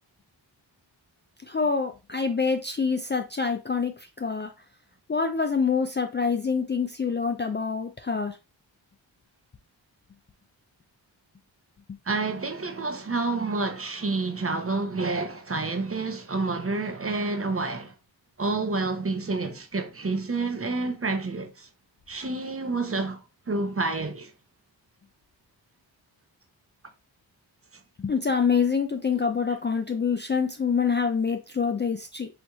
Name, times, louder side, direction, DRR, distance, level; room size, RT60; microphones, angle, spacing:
voice 1, 1.4-4.5 5.1-8.4 28.0-32.3, left 5 dB, 25° left, 0.4 m, -26 dB
voice 2, 12.0-17.9 18.4-21.7 22.1-24.3, right 3 dB, 30° right, 0.7 m, -29 dB
4.4 x 2.7 x 2.3 m
cardioid pair, 45°, 47 cm